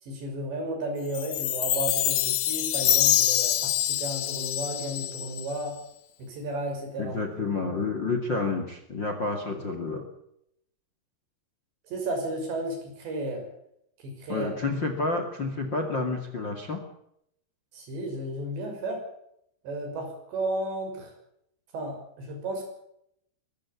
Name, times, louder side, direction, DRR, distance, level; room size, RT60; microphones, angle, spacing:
voice 1, 0.0-5.8 6.2-7.2 9.5-9.6 11.9-13.5 14.0-14.5 17.7-19.0 19.6-21.1 21.7-22.6, right 1 dB, 75° right, 4 dB, 8.1 m, -33 dB
Chime, 1.1-5.6, left 13 dB, 65° left, 2.0 m, -25 dB
voice 2, 7.0-10.1 14.3-16.8, left 3 dB, 35° left, 7 dB, 2.1 m, -29 dB
22.5 x 15.0 x 8.5 m, 0.75 s
omnidirectional pair, 5.2 m